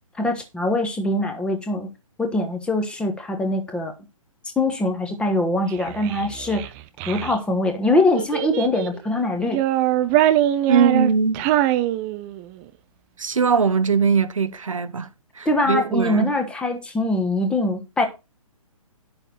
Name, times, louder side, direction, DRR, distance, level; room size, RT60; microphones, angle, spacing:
voice 1, 0.2-1.9 2.2-3.9 4.6-6.7 7.1-9.6 15.4-18.1, left 2 dB, 5° left, 1.3 m, -23 dB
Child speech kid speaking, 5.7-7.4 8.1-9.0 9.4-12.6, right 13 dB, 20° right, 0.7 m, -23 dB
voice 2, 10.7-11.5 13.2-15.1 15.4-16.3, right 6 dB, 65° right, 1.0 m, -21 dB
10.5 x 6.8 x 4.2 m
figure-of-eight pair, 130°, 19 cm